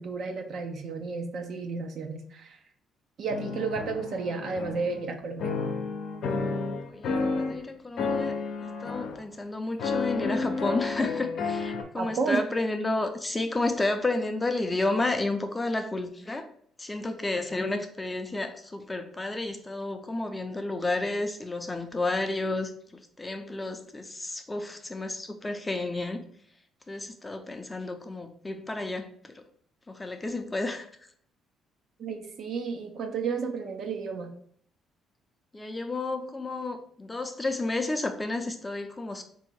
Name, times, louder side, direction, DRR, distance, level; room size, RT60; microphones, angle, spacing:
voice 1, 0.0-2.6 3.2-5.5 11.9-12.5 32.0-34.3, right 4 dB, 60° right, 5 dB, 0.7 m, -32 dB
sound 1, 3.3-5.1 5.4-7.6 8.0-9.2 9.8-11.8, left 4 dB, 65° left, 0.7 m, -31 dB
voice 2, 6.9-8.4 8.6-16.5 16.8-22.7 23.2-26.2 26.9-29.1 29.3-29.4 29.9-30.9 35.5-39.2, left 2 dB, 20° left, 6 dB, 0.5 m, -31 dB
3.5 x 2.7 x 4.3 m, 0.63 s
cardioid pair, 85°, 0 cm